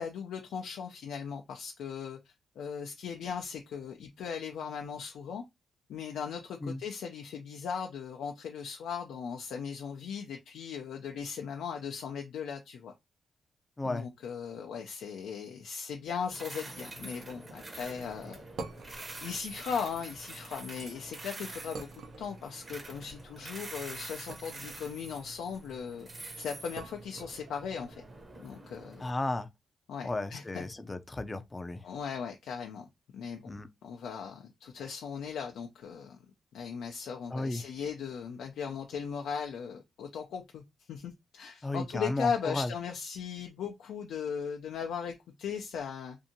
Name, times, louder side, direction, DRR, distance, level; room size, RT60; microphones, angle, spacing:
voice 1, 0.0-5.4 5.9-12.9 13.8-18.4 19.2-21.9 22.2-26.1 26.4-28.0 28.4-29.1 29.9-30.6 31.8-32.9 33.1-33.5 33.8-36.2 36.5-40.6 40.9-46.2, left 6 dB, 90° left, 0.4 m, -38 dB
sound 1, 16.2-29.1, right 2 dB, 35° right, 0.8 m, -46 dB
sound 2, 17.8-28.3, right 3 dB, 70° right, 0.5 m, -49 dB
voice 2, 29.0-29.5 30.0-31.8 33.5-33.7 37.3-37.7 41.6-42.7, left 2 dB, 25° left, 0.4 m, -34 dB
2.6 x 2.5 x 2.7 m
cardioid pair, 90°, 0 cm